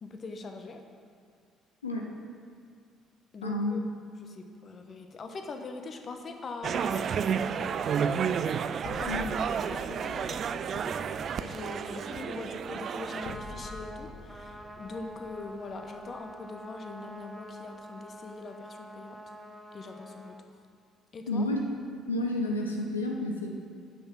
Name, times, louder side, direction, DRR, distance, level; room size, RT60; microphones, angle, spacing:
voice 1, 0.0-0.8 3.3-3.8 4.2-7.7 9.0-11.0 11.4-19.2 19.7-20.4 21.1-21.5, left 3 dB, 40° left, 5 dB, 0.9 m, -42 dB
voice 2, 3.4-3.8 9.1-9.3 21.3-21.6 22.1-23.6, left 1 dB, 80° left, 1 dB, 0.6 m, -30 dB
sound 1, 6.6-13.3, right 7 dB, 45° right, 0.3 m, -31 dB
sound 2, 8.8-16.8, left 2 dB, 55° left, 1.1 m, -48 dB
Trumpet, 13.0-20.4, equal, 5° right, 1.0 m, -46 dB
9.1 x 6.1 x 6.1 m, 2.2 s
figure-of-eight pair, 50°, 0 cm